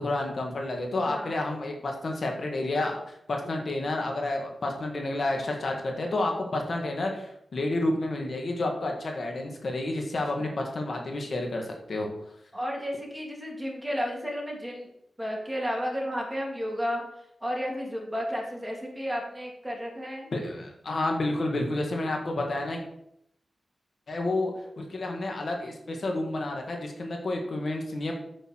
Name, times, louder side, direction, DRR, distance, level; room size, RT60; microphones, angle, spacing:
voice 1, 0.0-3.0 3.3-12.1 20.3-22.8 24.1-24.5 24.8-28.1, left 2 dB, 65° left, 2 dB, 1.9 m, -30 dB
voice 2, 12.5-14.9 15.2-20.3, equal, 10° right, -1 dB, 3.1 m, -32 dB
8.1 x 8.1 x 4.7 m, 0.75 s
cardioid pair, 65°, 0 cm